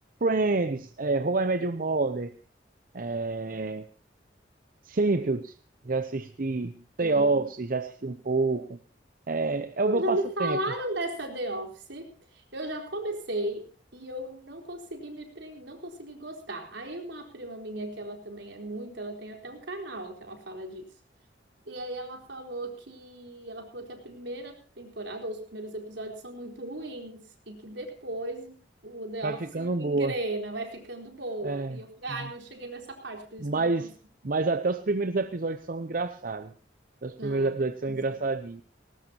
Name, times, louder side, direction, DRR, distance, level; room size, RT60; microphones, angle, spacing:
voice 1, 0.2-2.3 2.9-3.9 4.8-5.6 5.8-8.8 9.3-10.6 29.2-30.1 31.4-31.8 33.4-33.9 34.2-36.5 37.0-38.6, right 3 dB, 50° right, 10 dB, 0.7 m, -28 dB
voice 2, 7.0-7.4 9.9-20.9 21.7-33.9 34.2-34.3 37.2-38.2, right 1 dB, 75° right, 3 dB, 4.1 m, -36 dB
19.0 x 19.0 x 2.9 m, 0.38 s
head